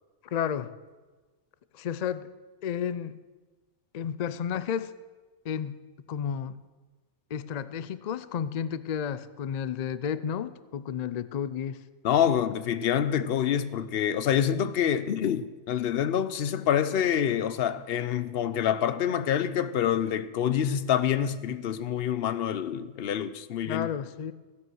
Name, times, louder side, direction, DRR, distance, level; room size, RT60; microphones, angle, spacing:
voice 1, 0.3-0.7 1.7-2.3 2.6-3.2 3.9-4.9 5.4-6.6 7.3-11.8 23.7-24.3, left 8 dB, 75° left, 0.3 m, -32 dB
voice 2, 12.0-23.9, left 9 dB, 55° left, 0.7 m, -26 dB
16.0 x 9.4 x 6.3 m
omnidirectional pair, 1.4 m